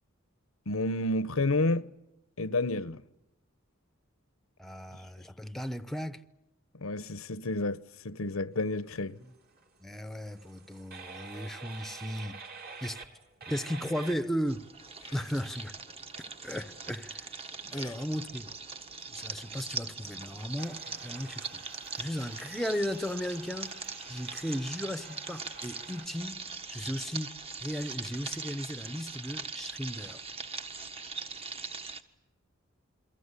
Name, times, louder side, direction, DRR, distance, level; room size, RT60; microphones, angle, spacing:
voice 1, 0.7-1.9 2.4-3.0 6.7-9.2 17.6-17.9, left 2 dB, 90° left, 1.0 m, -30 dB
voice 2, 4.6-6.2 9.2-9.3 9.8-12.4 12.8-13.0 13.5-14.7 15.1-15.8 16.4-17.3 17.7-18.5 19.1-21.6 22.0-23.7 24.1-26.4 26.7-27.3 27.6-30.2, equal, ahead, 0.9 m, -35 dB
sound 1, 9.1-26.1, right 4 dB, 50° right, 3.5 m, -50 dB
sound 2, 14.5-32.0, right 4 dB, 30° right, 1.4 m, -41 dB
28.5 x 23.0 x 8.3 m
head